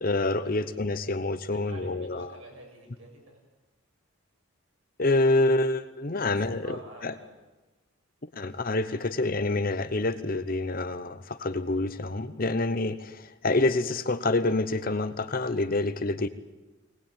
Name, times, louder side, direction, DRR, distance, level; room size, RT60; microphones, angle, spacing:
voice 1, 0.0-2.3 5.0-6.7 7.0-7.1 8.3-16.3, left 2 dB, 40° left, 12 dB, 0.9 m, -27 dB
voice 2, 1.5-3.4 6.2-7.3 8.5-8.6, right 1 dB, 70° right, 0 dB, 7.3 m, -49 dB
20.5 x 19.5 x 9.0 m, 1.1 s
head